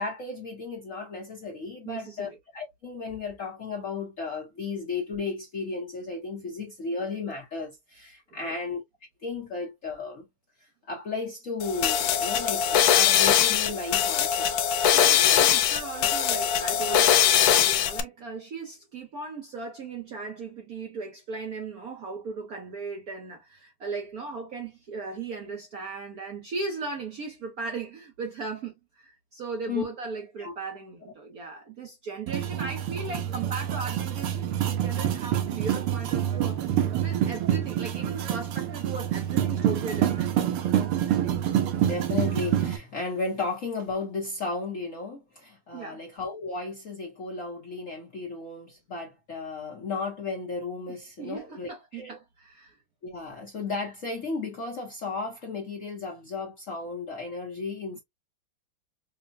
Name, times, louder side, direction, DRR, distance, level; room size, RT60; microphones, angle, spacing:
voice 1, 0.0-8.8 9.2-10.2 10.6-14.6 29.7-29.8 30.4-30.5 41.8-52.2 53.0-58.0, left 4 dB, 55° left, 0.9 m, -34 dB
voice 2, 1.8-2.4 8.3-8.6 14.9-40.3 45.7-46.0 50.9-52.8, right 4 dB, 65° right, 0.9 m, -37 dB
sound 1, 11.6-18.0, left 9 dB, 75° left, 1.3 m, -22 dB
sound 2, 32.3-42.8, right 10 dB, 90° right, 1.7 m, -27 dB
5.4 x 2.1 x 2.5 m
omnidirectional pair, 2.4 m